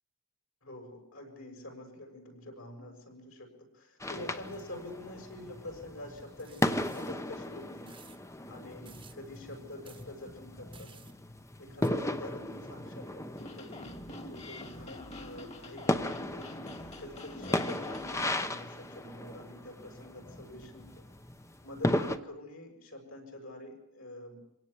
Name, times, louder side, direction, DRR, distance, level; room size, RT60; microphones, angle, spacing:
voice 1, 0.6-7.9 8.5-10.9 11.6-16.6 17.0-20.9 21.6-24.4, left 1 dB, 65° left, 3 dB, 7.0 m, -46 dB
sound 1, 4.0-22.2, left 1 dB, 15° left, 0.9 m, -36 dB
sound 2, 6.4-7.1 7.9-8.2 8.9-9.2 9.8-10.1 10.7-11.1 11.8-11.9, right 7 dB, 20° right, 1.2 m, -55 dB
sound 3, 13.4-18.4, left 1 dB, 30° left, 2.2 m, -46 dB
26.0 x 17.5 x 8.5 m, 0.80 s
head